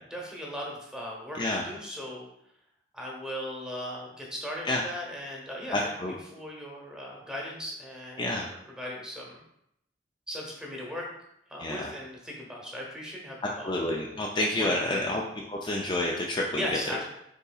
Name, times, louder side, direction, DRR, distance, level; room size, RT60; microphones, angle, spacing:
voice 1, 0.1-2.3 2.9-8.3 8.8-9.4 10.3-11.1 11.5-13.7 14.6-15.0 16.5-17.0, equal, 5° right, -2 dB, 1.0 m, -38 dB
voice 2, 5.7-6.1 8.2-8.5 11.6-11.8 13.6-15.2 15.5-16.6, left 1 dB, 25° left, -2 dB, 0.4 m, -28 dB
5.3 x 3.9 x 2.4 m, 0.78 s
head